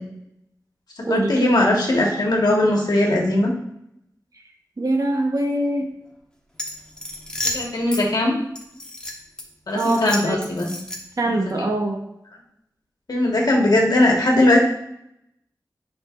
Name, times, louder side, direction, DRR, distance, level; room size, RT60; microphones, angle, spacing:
voice 1, 1.0-3.5 7.5-8.3 9.7-10.7 11.2-11.5 13.1-14.6, left 1 dB, 75° left, -1 dB, 1.6 m, -19 dB
voice 2, 4.8-5.9 9.7-10.4 11.2-12.0, right 1 dB, 60° right, 2 dB, 1.2 m, -23 dB
sound 1, 6.5-8.0 8.6-9.4 9.8-11.2, left 1 dB, 10° left, 1.4 m, -31 dB
9.6 x 5.5 x 2.6 m, 0.80 s
wide cardioid pair, 75°, 7 cm